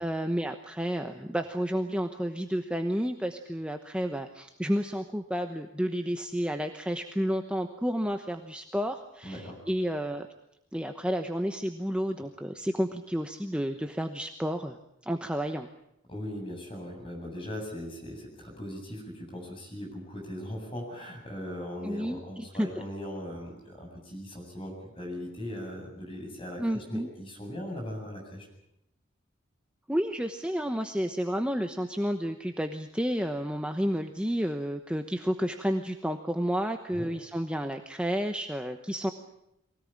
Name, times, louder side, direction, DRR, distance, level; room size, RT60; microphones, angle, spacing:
voice 1, 0.0-10.3 10.7-15.7 21.8-22.7 26.6-27.1 29.9-39.1, equal, 5° right, 5 dB, 1.0 m, -31 dB
voice 2, 9.2-9.6 16.1-28.5 36.9-37.1, equal, 25° left, 1 dB, 8.0 m, -39 dB
23.5 x 18.0 x 8.8 m, 0.79 s
head